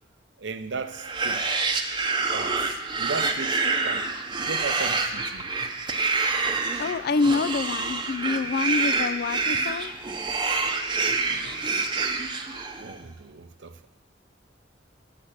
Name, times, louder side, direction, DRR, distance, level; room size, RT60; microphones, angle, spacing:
voice 1, 0.4-1.7 2.3-4.1 4.4-5.8 6.2-6.9 11.3-11.9 12.8-13.9, right 4 dB, 75° right, 0.7 m, -38 dB
sound 1, 0.9-12.9, right 4 dB, 25° right, 0.8 m, -27 dB
voice 2, 6.8-9.9, left 4 dB, 55° left, 0.4 m, -26 dB
9.3 x 6.0 x 7.9 m
head